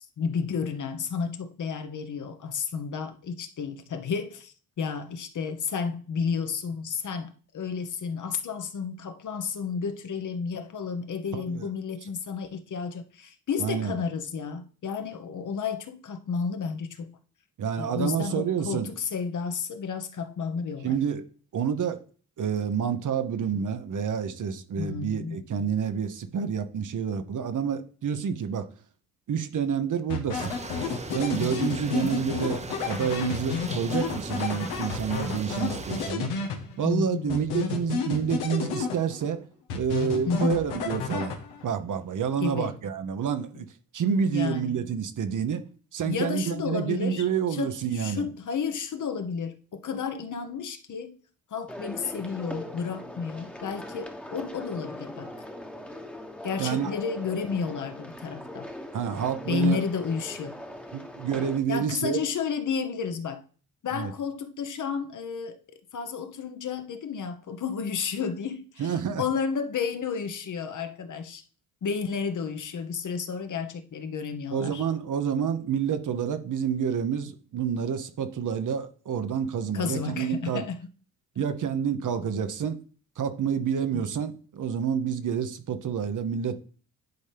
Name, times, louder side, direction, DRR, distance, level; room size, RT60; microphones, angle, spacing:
voice 1, 0.2-17.2 17.8-21.0 24.7-25.4 36.8-37.4 40.2-40.6 42.4-42.8 44.3-44.8 46.0-51.2 51.5-55.3 56.4-58.7 59.5-60.6 61.7-63.4 63.8-71.4 71.8-74.8 79.7-80.8 83.9-84.1, left 6 dB, 50° left, 1.1 m, -32 dB
voice 2, 11.3-11.7 13.6-14.0 17.6-18.9 20.8-21.2 21.5-22.0 22.4-28.7 29.3-30.6 31.1-36.3 36.8-39.4 39.7-41.4 41.6-43.7 43.9-45.7 45.9-48.3 56.6-56.9 58.9-59.8 60.9-62.2 63.9-64.1 68.8-69.2 74.5-80.7 81.4-82.8 83.2-86.6, right 7 dB, 50° right, 1.0 m, -28 dB
sound 1, 30.1-36.9 37.3-39.3 39.7-41.7, left 6 dB, 85° left, 1.3 m, -31 dB
sound 2, 30.3-36.1, right 3 dB, 15° right, 0.8 m, -38 dB
sound 3, 51.7-61.6, left 1 dB, 5° left, 1.2 m, -40 dB
10.5 x 4.2 x 3.4 m
supercardioid pair, 60°, 39 cm